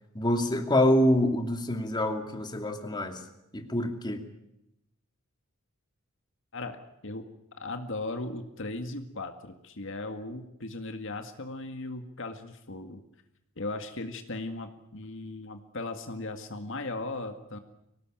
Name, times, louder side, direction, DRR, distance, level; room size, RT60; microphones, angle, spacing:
voice 1, 0.1-3.2 3.5-4.2, left 1 dB, 20° left, 4 dB, 2.6 m, -26 dB
voice 2, 6.5-7.3 7.6-13.0 13.6-17.6, left 2 dB, 60° left, 6 dB, 2.0 m, -37 dB
25.0 x 18.5 x 9.1 m, 0.84 s
head